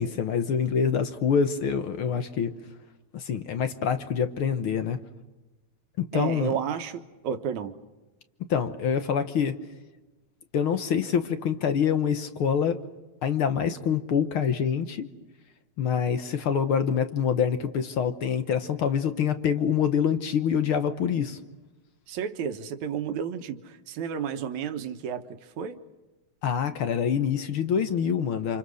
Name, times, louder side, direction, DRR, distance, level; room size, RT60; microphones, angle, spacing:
voice 1, 0.0-2.5 3.1-5.0 6.0-6.5 8.5-9.6 10.5-12.8 13.2-15.1 15.8-21.4 26.4-28.6, left 7 dB, 60° left, 1.6 m, -26 dB
voice 2, 6.1-7.8 22.1-25.3 25.6-25.8, right 8 dB, 75° right, 2.6 m, -31 dB
29.0 x 27.5 x 6.4 m
omnidirectional pair, 3.4 m